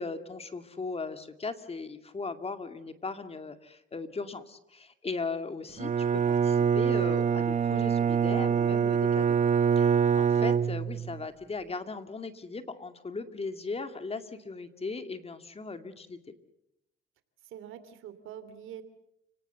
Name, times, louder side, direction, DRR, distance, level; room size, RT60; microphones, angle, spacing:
voice 1, 0.0-9.4 9.8-16.3, left 4 dB, 30° left, 8 dB, 2.3 m, -38 dB
Bowed string instrument, 5.8-11.2, right 7 dB, 35° right, 0.9 m, -25 dB
voice 2, 10.2-10.5 17.4-18.8, right 10 dB, 85° right, 12 dB, 2.9 m, -45 dB
30.0 x 18.5 x 8.0 m, 0.81 s
cardioid pair, 90°, 20 cm